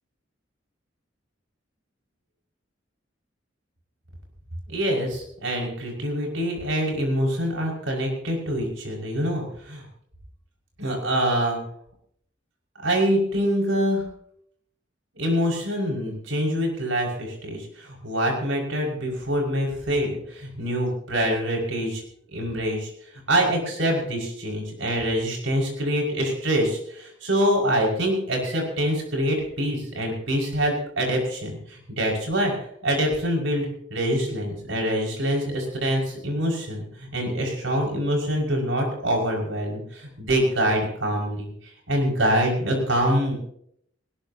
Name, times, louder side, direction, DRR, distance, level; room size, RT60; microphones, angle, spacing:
voice 1, 4.7-9.8 10.8-11.6 12.8-14.0 15.2-22.0 22.3-22.9 23.3-32.5 32.8-41.5 41.9-43.4, equal, 85° right, 0 dB, 5.8 m, -25 dB
19.5 x 19.5 x 2.9 m, 0.68 s
head